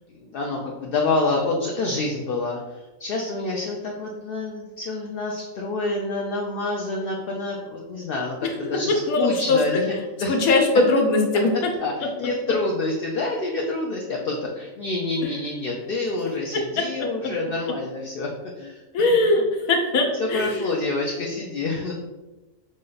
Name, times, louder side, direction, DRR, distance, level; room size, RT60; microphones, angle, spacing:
voice 1, 0.1-10.4 11.8-18.3 18.6-18.8 20.2-21.9, left 2 dB, 65° left, -1 dB, 0.5 m, -27 dB
voice 2, 8.4-8.8 9.1-9.8 10.3-11.7 15.2-15.3 16.5-17.3 18.9-20.8, left 2 dB, 90° left, 2 dB, 1.2 m, -21 dB
5.0 x 2.1 x 3.8 m, 1.1 s
omnidirectional pair, 1.4 m